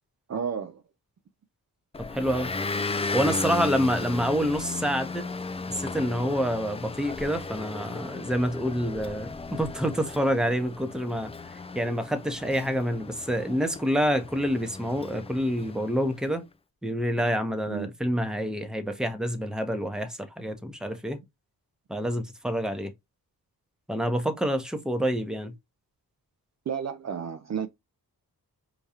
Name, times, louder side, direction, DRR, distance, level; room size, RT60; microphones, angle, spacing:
voice 1, 0.3-0.8 17.7-17.9 26.7-27.7, right 7 dB, 45° right, 0.5 m, -32 dB
Motor vehicle (road) / Engine, 1.9-16.2, left 3 dB, 15° left, 0.3 m, -36 dB
voice 2, 2.1-2.5 3.1-5.2 5.7-11.3 11.7-16.4 16.8-21.2 21.9-22.9 23.9-25.5, equal, ahead, 0.7 m, -27 dB
4.8 x 2.3 x 2.7 m
cardioid pair, 60°, 39 cm